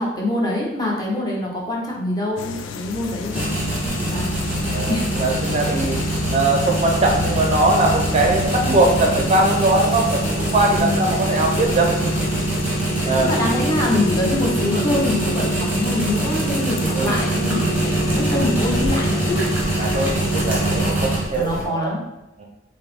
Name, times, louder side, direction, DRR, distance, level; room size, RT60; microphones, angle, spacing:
voice 1, 0.0-4.4 4.9-5.1 10.8-11.2 12.9-19.5 21.3-22.0, left 1 dB, 20° left, -3 dB, 0.8 m, -25 dB
sound 1, 2.4-20.9, left 3 dB, 80° left, 0.3 m, -30 dB
kávovar čištění, 3.3-21.7, right 2 dB, 10° right, 0.8 m, -24 dB
voice 2, 4.6-6.0 6.3-12.3 13.1-13.3 16.9-17.2 19.8-21.9 22.4-22.5, right 2 dB, 35° right, 0 dB, 0.5 m, -21 dB
5.2 x 2.0 x 3.4 m, 0.92 s
head